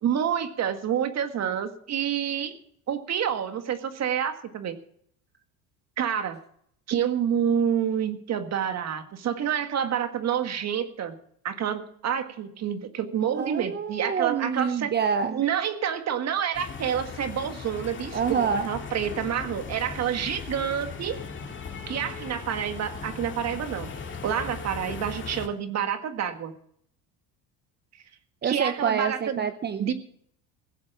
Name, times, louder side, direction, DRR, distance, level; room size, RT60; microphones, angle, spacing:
voice 1, 0.0-2.6 2.9-4.8 6.0-6.4 6.9-11.2 11.4-14.9 15.3-21.2 21.9-23.9 24.2-26.5 28.4-29.5 29.8-29.9, right 8 dB, 45° right, 8 dB, 1.7 m, -28 dB
voice 2, 13.3-15.4 18.1-18.7 28.4-29.9, right 6 dB, 30° right, 9 dB, 0.8 m, -27 dB
sound 1, 16.5-25.5, left 5 dB, 30° left, 2.3 m, -38 dB
16.5 x 7.5 x 7.3 m, 0.65 s
supercardioid pair, 100°, 36 cm